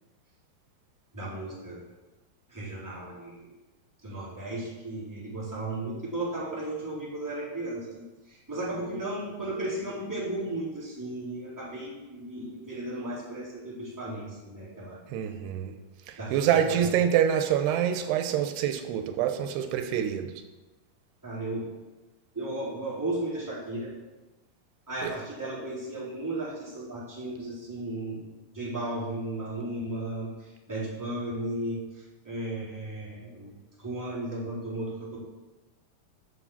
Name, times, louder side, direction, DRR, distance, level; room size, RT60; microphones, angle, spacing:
voice 1, 1.1-1.8 2.5-3.6 4.0-7.9 8.3-15.0 16.2-16.8 21.2-21.7 22.3-23.9 24.9-35.2, right 1 dB, 5° right, -8 dB, 3.8 m, -35 dB
voice 2, 15.1-15.7 16.1-20.3 25.0-25.1, right 9 dB, 85° right, 6 dB, 2.9 m, -26 dB
9.8 x 6.8 x 7.3 m, 1.1 s
omnidirectional pair, 4.6 m